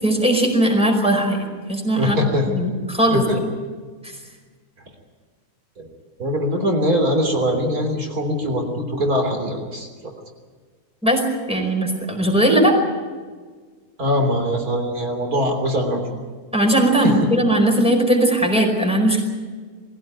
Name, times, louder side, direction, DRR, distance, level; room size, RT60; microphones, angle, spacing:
voice 1, 0.0-1.4 1.7-2.2 2.5-3.2 4.0-4.1 11.0-11.2 11.5-12.8 16.5-19.2, right 1 dB, 5° right, 2 dB, 4.9 m, -18 dB
voice 2, 2.0-2.5 3.1-3.4 5.8-5.9 6.2-9.9 14.0-16.0 17.0-17.1, equal, 90° right, 3 dB, 3.9 m, -22 dB
22.5 x 16.0 x 9.4 m, 1.5 s
omnidirectional pair, 1.5 m